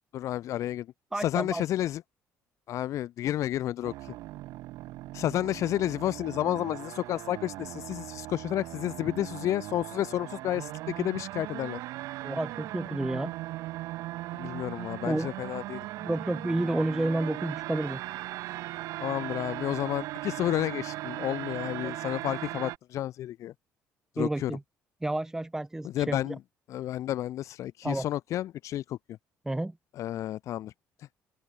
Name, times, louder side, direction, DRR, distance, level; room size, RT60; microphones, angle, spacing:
voice 1, 0.1-0.9 1.1-2.0 2.7-4.1 5.1-11.8 14.3-15.9 19.0-23.5 24.1-24.5 25.8-26.4 26.7-29.0 30.0-30.7 31.0-31.1, left 13 dB, 65° left, 0.6 m, -31 dB
voice 2, 1.1-1.6 12.2-13.3 15.1-15.3 16.0-18.0 21.8-21.9 24.2-24.6 25.0-26.3 27.8-28.0 29.5-29.7, right 1 dB, 10° right, 0.8 m, -30 dB
sound 1, 3.8-22.8, right 17 dB, 80° right, 1.5 m, -38 dB
cardioid pair, 105°, 6 cm